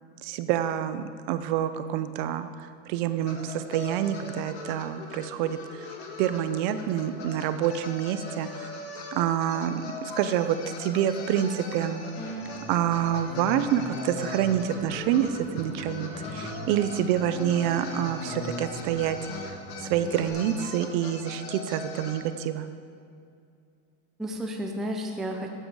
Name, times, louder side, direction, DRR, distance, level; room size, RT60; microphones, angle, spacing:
voice 1, 0.2-5.9 6.2-8.7 9.1-12.0 12.7-22.7, right 10 dB, 50° right, 11 dB, 0.6 m, -27 dB
sound 1, 3.2-22.2, left 4 dB, 70° left, 1.7 m, -41 dB
voice 2, 11.4-11.9 24.2-25.5, equal, ahead, 1 dB, 0.4 m, -33 dB
sound 2, 12.2-20.3, left 1 dB, 20° left, 1.9 m, -39 dB
12.5 x 7.7 x 4.8 m, 2.4 s
supercardioid pair, 160°, 33 cm